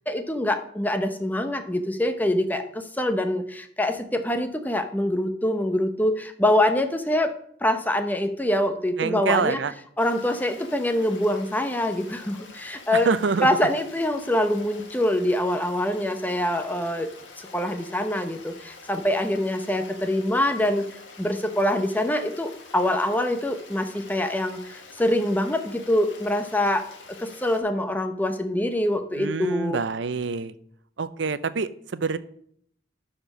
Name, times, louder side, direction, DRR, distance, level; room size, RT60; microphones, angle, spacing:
voice 1, 0.1-7.3 7.6-9.6 10.0-13.1 13.4-17.1 17.4-20.9 21.2-29.8, left 1 dB, 10° left, 7 dB, 0.7 m, -25 dB
voice 2, 9.0-9.7 12.9-13.5 29.2-30.5 31.0-32.2, right 4 dB, 75° right, 15 dB, 0.6 m, -26 dB
Stream, 10.0-27.6, left 4 dB, 85° left, 1.5 m, -47 dB
12.0 x 4.4 x 6.0 m, 0.66 s
head